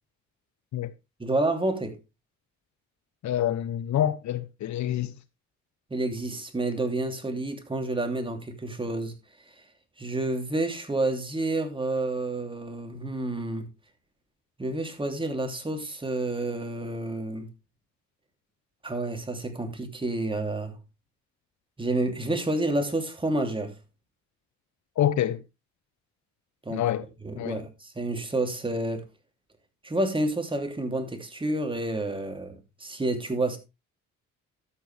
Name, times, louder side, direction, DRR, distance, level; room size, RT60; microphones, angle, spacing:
voice 1, 1.2-1.9 5.9-9.1 10.0-13.7 14.6-17.5 18.8-20.8 21.8-23.7 26.6-26.8 27.2-29.0 29.8-33.6, right 2 dB, 15° right, 2.9 m, -29 dB
voice 2, 3.2-5.1 25.0-25.4 26.7-27.1 27.4-27.6, left 11 dB, 70° left, 0.9 m, -27 dB
12.5 x 8.5 x 3.4 m
cardioid pair, 90°, 30 cm